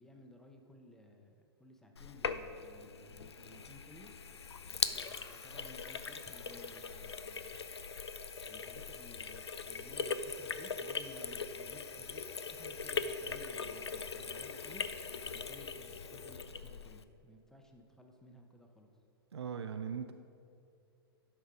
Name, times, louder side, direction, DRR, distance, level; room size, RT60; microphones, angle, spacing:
voice 1, 0.0-4.1 4.9-7.6 8.5-12.2 12.5-14.8 15.3-18.9, left 1 dB, 5° left, 3 dB, 0.8 m, -57 dB
Sink (filling or washing), 2.0-17.0, left 5 dB, 90° left, 0.4 m, -41 dB
Laughter, 4.6-8.4 8.9-9.1 9.5-11.4, left 1 dB, 20° left, 1.9 m, -62 dB
voice 2, 19.3-20.1, right 7 dB, 85° right, 8 dB, 0.4 m, -39 dB
11.5 x 5.3 x 4.8 m, 2.6 s
hypercardioid pair, 110°, 14 cm